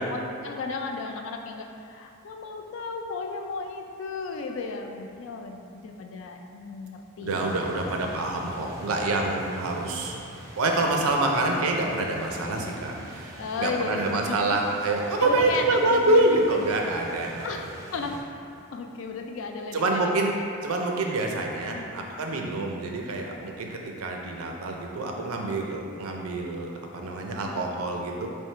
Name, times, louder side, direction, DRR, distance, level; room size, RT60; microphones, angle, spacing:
voice 1, 0.0-7.9 13.4-14.6 15.2-16.5 17.4-18.1 18.7-20.4 21.7-21.9 27.3-27.7, left 4 dB, 65° left, 4 dB, 0.3 m, -35 dB
voice 2, 7.2-10.2 10.6-17.5 19.7-20.3 20.6-28.3, right 2 dB, 85° right, 1 dB, 0.5 m, -26 dB
sound 1, 7.3-18.2, equal, 15° right, 0.4 m, -43 dB
3.5 x 2.7 x 4.2 m, 2.6 s
head